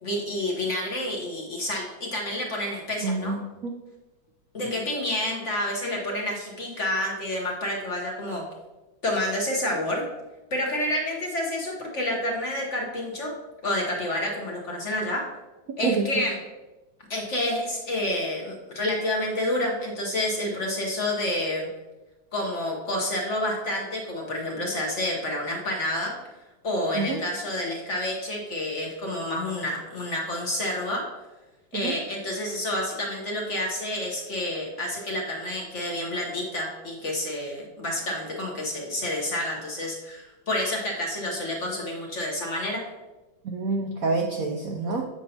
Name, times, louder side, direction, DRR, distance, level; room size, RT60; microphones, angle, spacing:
voice 1, 0.0-3.3 4.5-8.4 9.0-10.0 10.5-13.3 13.6-15.2 15.8-16.3 17.1-21.7 22.3-26.1 26.6-31.0 31.7-42.8, left 1 dB, 50° left, 0 dB, 1.0 m, -29 dB
voice 2, 3.0-3.7 15.8-16.1 26.9-27.2 31.7-32.0 43.4-45.1, right 3 dB, 90° right, 2 dB, 0.7 m, -27 dB
7.6 x 5.4 x 2.8 m, 1.1 s
omnidirectional pair, 2.1 m